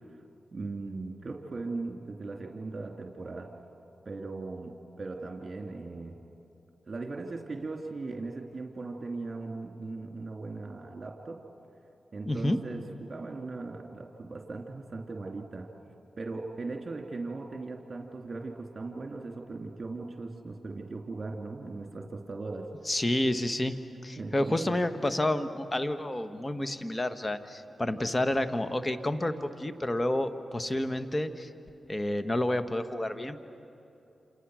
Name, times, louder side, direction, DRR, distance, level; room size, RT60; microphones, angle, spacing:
voice 1, 0.5-3.5 4.0-6.2 6.9-11.4 12.1-15.7 16.2-22.7 24.2-24.7, right 3 dB, 45° right, 2 dB, 2.8 m, -38 dB
voice 2, 12.3-12.6 22.8-23.7 24.0-31.5 31.9-33.4, left 1 dB, 25° left, 10 dB, 1.6 m, -29 dB
28.5 x 27.5 x 6.4 m, 2.9 s
supercardioid pair, 40°, 0 cm